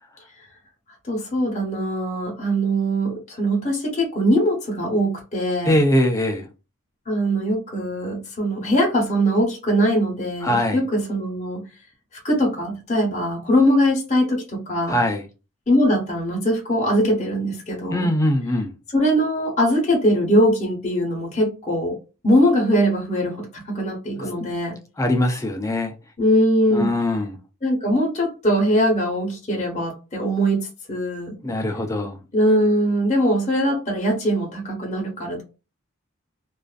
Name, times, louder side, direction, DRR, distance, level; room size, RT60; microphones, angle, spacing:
voice 1, 1.1-5.8 7.1-11.6 12.2-15.0 15.7-18.1 18.9-22.0 22.2-24.8 26.2-26.9 27.6-31.3 32.3-35.4, equal, 30° left, 0.8 m, -21 dB
voice 2, 5.6-6.5 10.4-10.8 14.9-15.3 17.9-18.7 24.2-24.5 25.0-25.9 26.7-27.4 31.4-32.2, left 1 dB, 15° left, 0.3 m, -22 dB
2.4 x 2.4 x 2.2 m
head